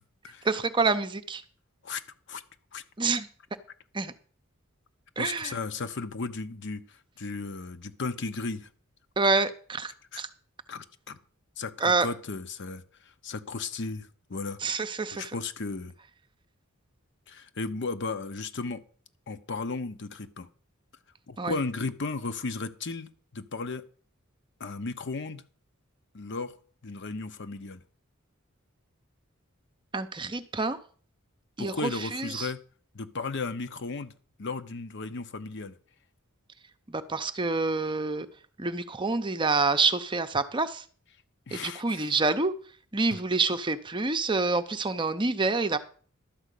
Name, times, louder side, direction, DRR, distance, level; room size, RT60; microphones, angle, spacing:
voice 1, 0.4-1.4 3.0-3.3 3.9-4.1 5.2-5.5 9.2-10.3 11.8-12.1 14.6-15.3 21.4-21.5 29.9-30.8 31.6-32.5 36.9-38.3 38.6-40.8 41.5-42.5 42.9-45.8, right 3 dB, 25° right, 9 dB, 0.7 m, -27 dB
voice 2, 5.2-8.7 10.1-10.2 10.7-11.2 11.6-14.6 15.1-15.9 17.3-18.8 19.3-20.5 21.3-23.8 24.6-25.4 26.1-26.5 26.8-27.8 31.6-32.6 32.9-34.1 34.4-35.7 41.5-42.1 43.1-43.2, left 3 dB, 60° left, 11 dB, 0.9 m, -35 dB
12.0 x 5.0 x 8.3 m, 0.43 s
head